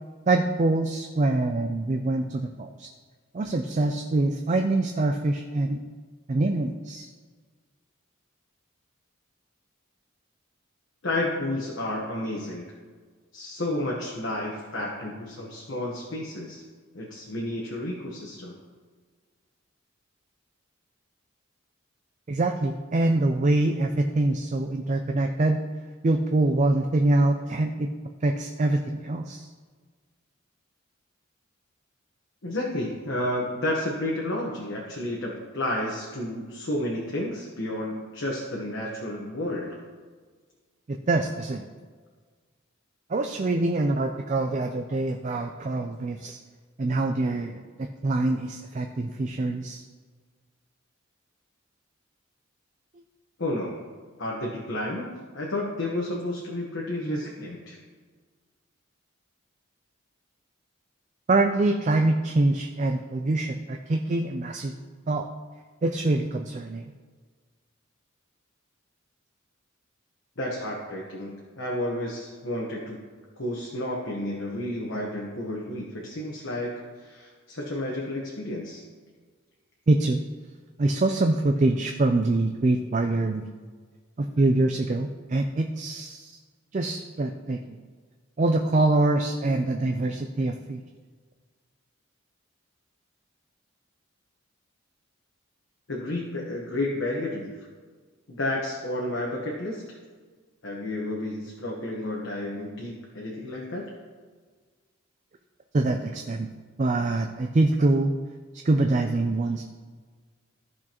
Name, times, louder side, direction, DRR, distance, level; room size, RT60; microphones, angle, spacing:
voice 1, 0.3-2.9 3.3-5.8 6.3-7.1 22.3-25.6 26.0-27.9 28.2-29.5 40.9-41.7 43.1-46.4 46.8-49.8 61.3-64.8 65.1-65.3 65.8-66.8 79.9-80.2 80.8-83.5 84.2-86.4 86.7-87.8 88.4-90.8 105.7-106.5 106.8-108.1 108.6-109.6, right 2 dB, 35° right, 4 dB, 0.4 m, -24 dB
voice 2, 11.0-12.7 13.3-16.6 16.9-18.5 32.4-39.8 53.4-53.8 54.2-57.8 70.4-73.0 73.4-78.8 95.9-97.5 98.3-99.8 100.6-103.9, left 1 dB, 65° left, -2 dB, 1.2 m, -31 dB
14.0 x 6.1 x 3.0 m, 1.5 s
head